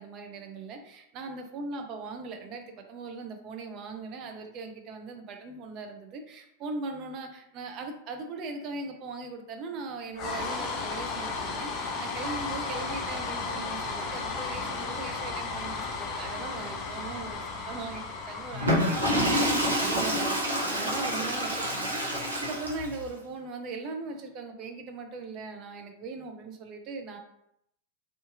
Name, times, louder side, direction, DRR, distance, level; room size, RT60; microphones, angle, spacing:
voice 1, 0.0-27.2, right 3 dB, 35° right, 4 dB, 0.4 m, -39 dB
sound 1, 10.1-20.4, left 4 dB, 35° left, 0.4 m, -35 dB
Water / Toilet flush, 18.5-23.0, equal, 80° right, 0.7 m, -27 dB
2.6 x 2.4 x 2.4 m, 0.76 s
figure-of-eight pair, 90°, 0 cm